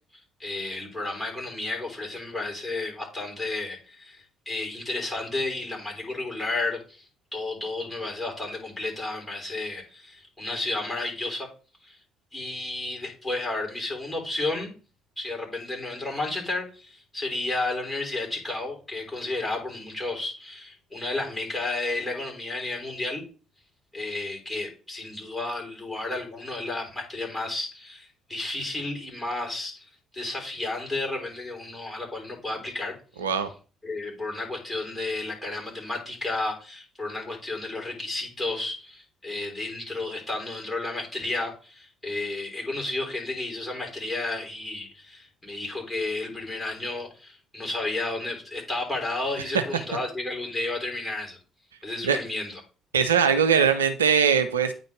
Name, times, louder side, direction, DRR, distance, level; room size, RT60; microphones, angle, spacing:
voice 1, 0.4-11.5 11.8-12.0 12.3-14.7 15.2-23.2 23.9-33.0 33.8-51.4 51.8-52.6, left 2 dB, 10° left, 0 dB, 3.7 m, -32 dB
voice 2, 52.9-54.7, right 7 dB, 80° right, 9 dB, 0.4 m, -21 dB
9.3 x 4.0 x 3.3 m, 0.36 s
figure-of-eight pair, 45°, 0 cm